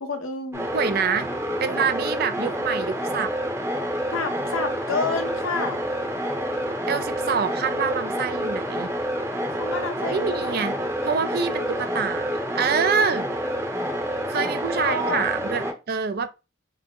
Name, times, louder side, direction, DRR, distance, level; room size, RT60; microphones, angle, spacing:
voice 1, 0.0-0.7 4.1-5.8 9.6-10.6 14.4-14.5 14.8-15.2, left 3 dB, 75° left, 0.8 m, -29 dB
sound 1, 0.5-15.7, equal, 10° right, 0.7 m, -28 dB
voice 2, 0.7-1.3 1.6-3.3 6.9-8.9 10.1-13.3 14.3-16.3, right 6 dB, 45° right, 0.4 m, -26 dB
3.7 x 2.0 x 3.7 m
head